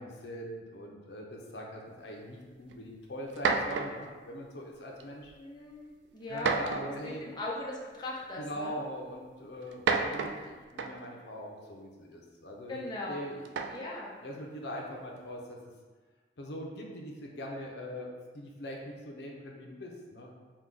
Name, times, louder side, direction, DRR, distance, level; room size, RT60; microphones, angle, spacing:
voice 1, 0.0-5.3 6.3-7.3 8.4-12.8 13.1-13.7 14.2-15.6 16.4-18.1 18.3-20.3, equal, 75° left, -1 dB, 0.6 m, -42 dB
sound 1, 2.7-2.8 3.3-4.1 5.0-5.3 6.4-7.1 8.2-8.3 9.6-11.2 13.4-14.0, right 4 dB, 85° right, 0.3 m, -31 dB
voice 2, 5.4-6.5 7.2-8.7 12.7-13.2 13.7-14.1, left 2 dB, 25° left, -4 dB, 0.6 m, -39 dB
4.6 x 2.2 x 3.7 m, 1.4 s
head